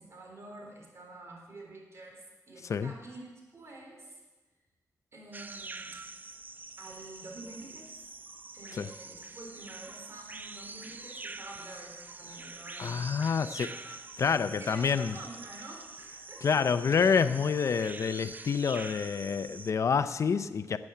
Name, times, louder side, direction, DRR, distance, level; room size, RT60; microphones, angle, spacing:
voice 1, 0.0-4.2 5.1-6.0 6.8-8.0 8.5-13.8 14.6-16.9, right 2 dB, 50° right, 0 dB, 3.9 m, -48 dB
sound 1, 5.3-19.7, right 3 dB, 30° right, 0.5 m, -45 dB
voice 2, 12.8-13.7 14.2-15.1 16.4-20.8, left 6 dB, 55° left, 12 dB, 0.5 m, -27 dB
12.0 x 8.6 x 7.8 m, 1.2 s
wide cardioid pair, 110°, 6 cm